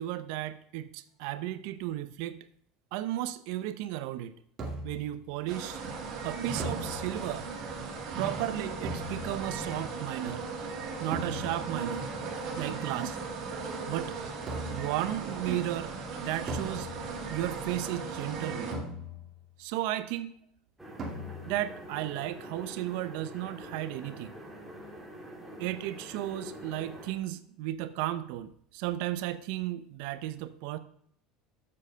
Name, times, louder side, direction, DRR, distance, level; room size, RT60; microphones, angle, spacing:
voice 1, 0.0-2.4 2.9-4.3 4.8-5.8 6.2-7.5 8.2-10.5 11.0-12.1 12.6-13.2 13.8-14.1 14.7-16.9 17.3-18.7 19.6-20.3 21.5-24.4 25.6-30.8, right 14 dB, 70° right, 13 dB, 0.6 m, -34 dB
sound 1, 4.6-5.1 6.6-7.5 8.8-9.6 11.1-11.8 14.5-15.0 16.5-17.3 18.7-19.5 21.0-21.7, right 1 dB, 30° right, 2.1 m, -39 dB
sound 2, 5.5-18.7, right 4 dB, 50° right, 2.6 m, -37 dB
sound 3, 20.8-27.1, equal, 5° right, 2.2 m, -46 dB
7.5 x 6.6 x 6.4 m, 0.64 s
supercardioid pair, 135°, 0 cm